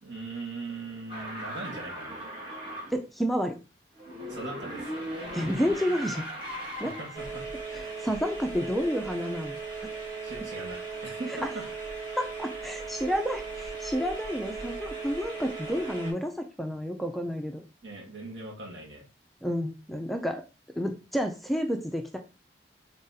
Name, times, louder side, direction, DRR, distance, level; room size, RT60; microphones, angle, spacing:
voice 1, 0.0-2.1 4.3-4.9 6.8-7.4 10.2-11.6 17.8-19.1, right 3 dB, 75° right, -2 dB, 1.6 m, -40 dB
sound 1, 1.1-3.0 4.0-7.3, equal, 25° right, 1.3 m, -38 dB
voice 2, 2.9-3.6 5.3-6.3 6.8-6.9 7.7-9.6 12.2-17.6 19.4-20.4 20.8-22.2, equal, ahead, 4 dB, 0.3 m, -30 dB
sound 2, 7.1-16.1, right 4 dB, 45° right, 2.3 m, -37 dB
3.9 x 3.9 x 2.6 m, 0.31 s
head